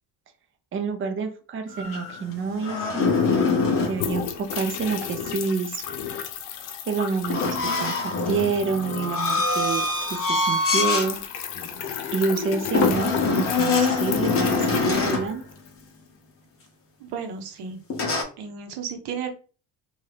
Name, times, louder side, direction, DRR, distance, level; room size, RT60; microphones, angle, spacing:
voice 1, 0.7-3.1 3.8-5.9 6.9-9.8 10.1-11.2 12.1-15.4, right 4 dB, 35° right, 6 dB, 0.5 m, -28 dB
sound 1, 1.7-4.0 7.3-11.1 11.6-11.8 12.7-15.3 17.9-18.2, left 4 dB, 35° left, 0.7 m, -24 dB
sound 2, 2.7-2.8 3.0-15.8, left 8 dB, 85° left, 0.6 m, -34 dB
voice 2, 17.0-17.8 18.4-19.3, right 6 dB, 80° right, 5 dB, 0.8 m, -33 dB
2.6 x 2.3 x 3.2 m, 0.37 s
cardioid pair, 115°, 38 cm